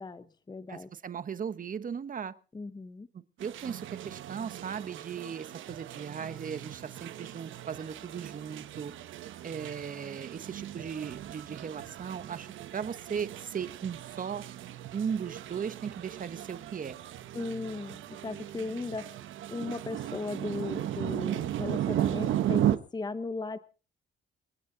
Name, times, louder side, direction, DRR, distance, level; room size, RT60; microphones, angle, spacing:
voice 1, 0.0-0.9 2.5-3.1 17.3-19.2 19.5-23.6, left 3 dB, 20° left, 12 dB, 0.9 m, -37 dB
voice 2, 0.7-2.3 3.1-8.9 9.4-14.4 14.9-17.0, right 7 dB, 45° right, 13 dB, 1.2 m, -37 dB
sound 1, 3.4-22.8, right 12 dB, 80° right, 1.1 m, -36 dB
28.5 x 9.5 x 4.0 m, 0.36 s
cardioid pair, 90°, 20 cm